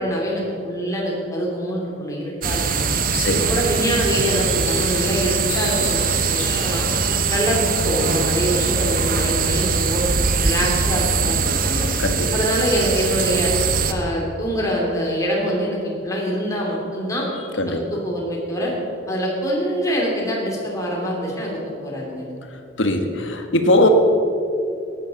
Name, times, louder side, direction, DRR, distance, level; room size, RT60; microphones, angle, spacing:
voice 1, 0.0-2.8 3.3-6.9 7.3-10.1 10.4-11.9 12.3-13.5 13.9-17.3 17.9-18.7 19.1-22.3, equal, 15° left, -3 dB, 2.8 m, -24 dB
sound 1, 2.4-13.9, right 5 dB, 45° right, 0.9 m, -22 dB
voice 2, 3.1-3.5 12.0-12.3 17.6-17.8 22.8-23.9, left 2 dB, 75° left, 5 dB, 1.4 m, -20 dB
sound 2, 4.2-7.9 8.2-9.0, left 3 dB, 35° left, 4.4 m, -35 dB
14.5 x 10.0 x 7.0 m, 2.6 s
head